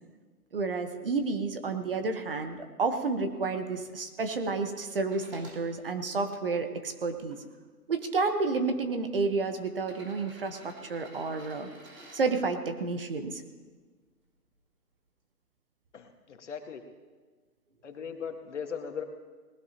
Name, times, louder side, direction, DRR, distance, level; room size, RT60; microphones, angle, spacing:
voice 1, 0.5-7.4 7.9-11.7 12.1-13.4, right 4 dB, 35° right, 7 dB, 1.1 m, -30 dB
sound 1, 5.0-5.6 6.3-7.4 8.4-8.5 9.7-12.2 14.1-14.2, right 2 dB, 85° right, 5.7 m, -52 dB
voice 2, 15.9-16.8 17.8-19.0, left 6 dB, 50° left, 5 dB, 1.6 m, -38 dB
19.5 x 17.0 x 2.9 m, 1.4 s
hypercardioid pair, 160°, 47 cm